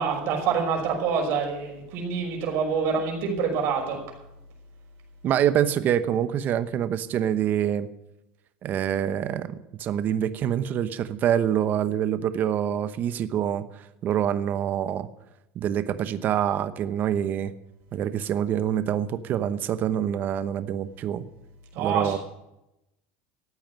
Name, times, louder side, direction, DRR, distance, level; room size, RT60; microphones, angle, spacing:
voice 1, 0.0-4.0 21.7-22.2, right 6 dB, 50° right, 1 dB, 5.9 m, -26 dB
voice 2, 5.2-7.9 8.6-13.6 14.0-15.1 15.5-17.5 17.9-21.3 21.8-22.2, right 10 dB, 35° right, 12 dB, 0.9 m, -26 dB
14.0 x 8.9 x 9.3 m, 0.88 s
supercardioid pair, 145°, 5 cm